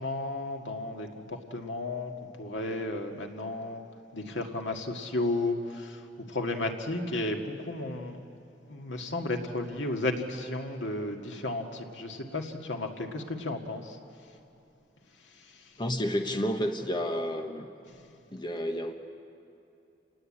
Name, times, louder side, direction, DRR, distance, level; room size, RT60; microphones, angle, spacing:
voice 1, 0.0-2.1 2.4-3.8 4.1-6.0 6.3-8.2 8.7-14.0, left 2 dB, 85° left, 3 dB, 2.1 m, -33 dB
voice 2, 15.8-17.7 18.3-18.9, equal, 25° left, 5 dB, 1.2 m, -30 dB
29.0 x 19.5 x 8.8 m, 2.8 s
head